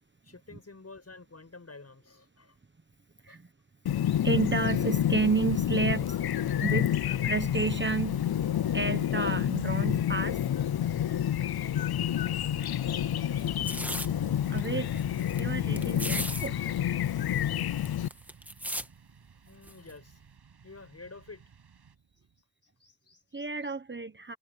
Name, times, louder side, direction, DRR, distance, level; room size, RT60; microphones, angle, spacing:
voice 1, 0.2-2.6 3.3-3.4 18.7-18.8 19.5-20.2 20.6-21.4 22.8-23.7, left 3 dB, 40° left, 7.6 m, -50 dB
Chirp tweet, 3.9-18.1, left 10 dB, 70° left, 0.6 m, -29 dB
voice 2, 4.2-8.3 8.7-10.4 14.5-15.0 15.4-16.6 23.3-24.3, right 4 dB, 30° right, 1.2 m, -31 dB
sound 1, 5.4-22.3, right 6 dB, 80° right, 6.1 m, -53 dB
sound 2, 13.4-14.1 14.6-14.7 14.9-15.4 15.8-16.5 16.8-16.9 17.1-18.9 19.7-19.9, right 1 dB, 5° right, 1.6 m, -36 dB
wide cardioid pair, 80°, 39 cm